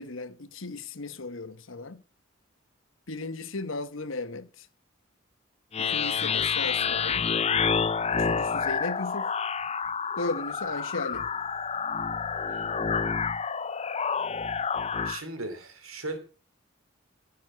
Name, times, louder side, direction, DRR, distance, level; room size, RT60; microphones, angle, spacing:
voice 1, 0.0-2.0 3.1-4.7 5.8-7.3 8.1-9.3 10.2-11.3, left 3 dB, 70° left, 1.2 m, -36 dB
sound 1, 5.7-15.2, left 6 dB, 30° left, 0.5 m, -28 dB
voice 2, 12.5-13.0 15.0-16.2, right 2 dB, 85° right, 3.0 m, -38 dB
15.5 x 6.3 x 7.5 m
head